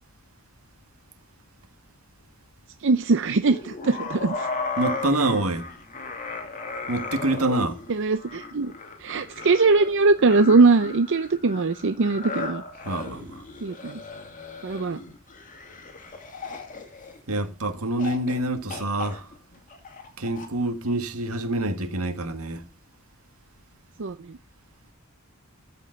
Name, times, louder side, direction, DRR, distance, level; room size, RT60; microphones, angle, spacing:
voice 1, 2.8-4.5 7.9-8.7 9.0-12.6 13.6-14.0 14.6-15.0 24.0-24.1, right 3 dB, 60° right, 0.6 m, -21 dB
sound 1, 3.4-17.5 18.0-18.4 18.7-20.5, left 3 dB, 35° left, 2.2 m, -36 dB
voice 2, 4.8-5.7 6.9-7.8 12.8-13.4 17.3-19.3 20.2-22.6, right 1 dB, 80° right, 1.8 m, -26 dB
14.0 x 5.4 x 7.8 m
head